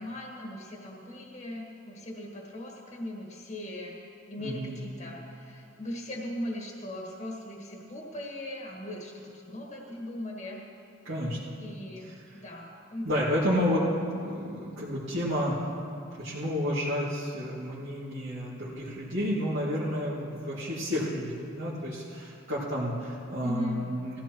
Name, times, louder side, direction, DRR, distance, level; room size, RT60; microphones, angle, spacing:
voice 1, 0.0-4.0 4.3-10.6 11.6-13.1 23.4-23.9, left 1 dB, 35° left, -2 dB, 1.5 m, -39 dB
voice 2, 4.4-4.8 11.0-11.4 13.0-15.6 16.2-24.2, equal, 70° right, -10 dB, 2.3 m, -30 dB
18.5 x 15.0 x 3.1 m, 2.5 s
head